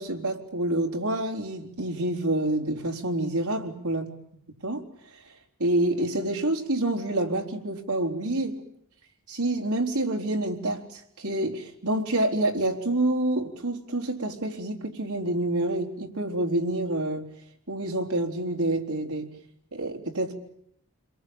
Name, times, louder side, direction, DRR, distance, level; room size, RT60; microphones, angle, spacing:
voice 1, 0.0-4.1 4.6-4.9 5.6-8.6 9.3-17.2 17.7-19.3 19.7-20.3, right 1 dB, 90° right, 2 dB, 4.1 m, -27 dB
29.5 x 22.5 x 8.8 m, 0.74 s
head